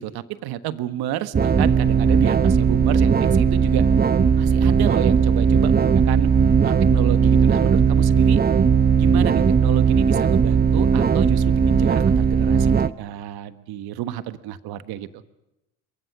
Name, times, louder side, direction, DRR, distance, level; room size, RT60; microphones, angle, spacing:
voice 1, 0.0-3.9 4.4-6.3 6.6-8.4 9.0-12.7 13.0-15.2, right 13 dB, 70° right, 12 dB, 1.4 m, -30 dB
sound 1, 1.3-12.9, right 6 dB, 25° right, 0.8 m, -17 dB
27.5 x 22.5 x 6.1 m, 0.90 s
supercardioid pair, 80°, 38 cm